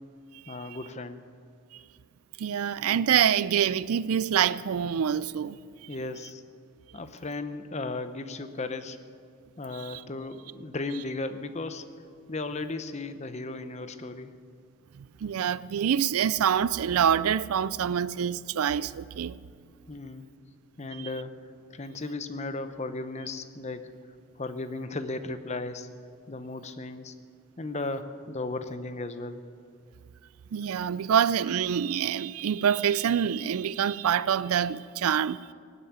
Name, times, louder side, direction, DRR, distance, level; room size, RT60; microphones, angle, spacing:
voice 1, 0.5-1.2 5.9-6.4 6.9-9.0 9.6-11.9 12.3-14.3 19.9-20.3 20.8-24.0 24.3-25.9 26.3-27.2 27.6-29.5, left 2 dB, 30° left, 0.7 m, -35 dB
voice 2, 2.4-5.6 9.8-10.0 15.0-19.4 30.5-35.5, right 8 dB, 80° right, 0.4 m, -26 dB
18.0 x 8.1 x 9.3 m
head